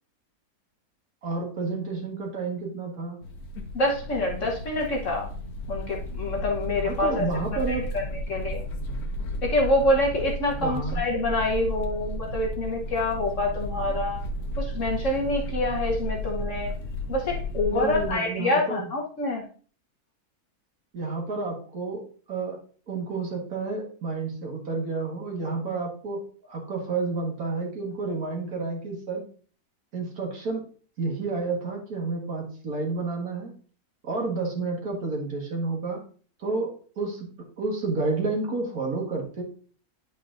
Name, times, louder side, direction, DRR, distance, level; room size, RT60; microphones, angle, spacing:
voice 1, 1.2-3.2 6.8-7.9 10.6-11.0 17.6-18.8 20.9-22.0 22.3-22.6 22.9-26.2 26.5-29.3 29.9-30.6 31.0-33.5 34.0-36.0 36.4-37.3 37.6-39.4, right 3 dB, 70° right, 0 dB, 2.1 m, -30 dB
sound 1, 3.2-18.1, equal, 80° left, 1.3 m, -33 dB
voice 2, 3.7-5.3 5.7-7.3 7.7-8.6 9.4-14.2 14.6-16.7 17.1-19.5, left 1 dB, 55° left, -1 dB, 1.3 m, -26 dB
9.4 x 5.1 x 2.5 m, 0.42 s
omnidirectional pair, 1.6 m